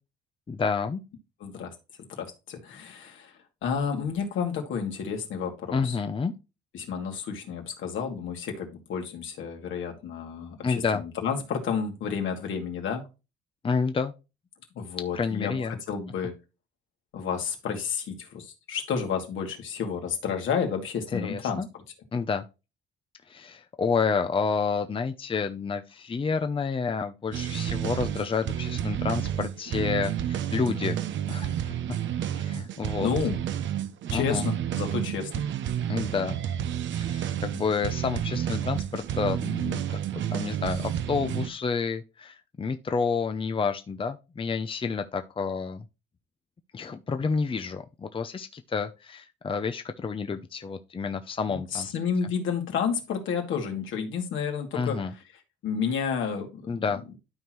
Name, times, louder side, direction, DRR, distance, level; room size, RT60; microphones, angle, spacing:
voice 1, 0.5-1.0 5.7-6.3 10.6-11.0 13.6-14.1 15.1-15.8 21.1-21.7 22.1-22.4 23.3-31.0 31.3-31.7 32.3-33.1 34.1-34.5 35.9-36.4 37.0-45.8 46.7-51.9 54.7-55.1 56.7-57.0, left 5 dB, 25° left, 0.7 m, -29 dB
voice 2, 1.4-1.7 2.1-3.3 3.6-6.0 6.7-13.0 14.7-16.4 17.1-21.6 33.0-33.4 34.1-35.4 51.5-55.0 55.6-56.8, left 6 dB, 80° left, 2.4 m, -31 dB
sound 1, 27.3-41.5, right 10 dB, 70° right, 0.8 m, -30 dB
12.5 x 4.3 x 3.1 m
cardioid pair, 90°, 20 cm